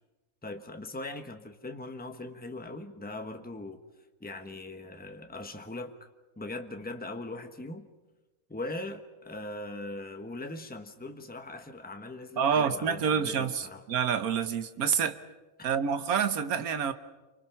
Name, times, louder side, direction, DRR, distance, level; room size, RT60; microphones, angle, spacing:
voice 1, 0.4-3.8 4.2-6.0 6.4-7.9 8.5-13.8, left 2 dB, 5° left, 6 dB, 1.2 m, -40 dB
voice 2, 12.4-15.2 15.6-16.9, right 7 dB, 75° right, 10 dB, 1.5 m, -28 dB
28.5 x 25.0 x 5.9 m, 1.1 s
omnidirectional pair, 1.6 m